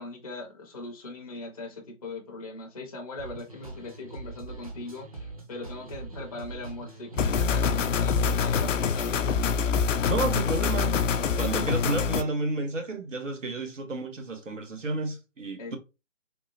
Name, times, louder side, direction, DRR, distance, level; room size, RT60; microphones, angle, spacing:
voice 1, 0.0-9.3 15.6-15.8, left 2 dB, 30° left, 0.5 m, -40 dB
sound 1, 3.2-8.7, right 3 dB, 30° right, 0.5 m, -42 dB
sound 2, 7.2-12.2, left 6 dB, 85° left, 0.5 m, -25 dB
voice 2, 10.1-10.9 11.4-15.8, right 3 dB, 90° right, 1.0 m, -31 dB
3.6 x 2.1 x 2.7 m
figure-of-eight pair, 150°, 37 cm